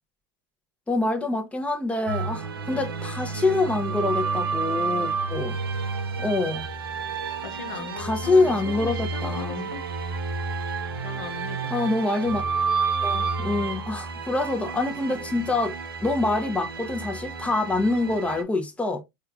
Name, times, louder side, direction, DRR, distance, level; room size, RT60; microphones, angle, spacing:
voice 1, 0.9-5.6 6.2-6.7 7.7-9.7 11.7-12.4 13.0-19.0, left 2 dB, 10° left, 0.8 m, -26 dB
sound 1, 2.1-18.4, right 4 dB, 90° right, 0.6 m, -30 dB
voice 2, 7.4-9.9 11.0-11.7, left 9 dB, 60° left, 0.7 m, -39 dB
4.4 x 2.4 x 2.4 m
hypercardioid pair, 95°, 12 cm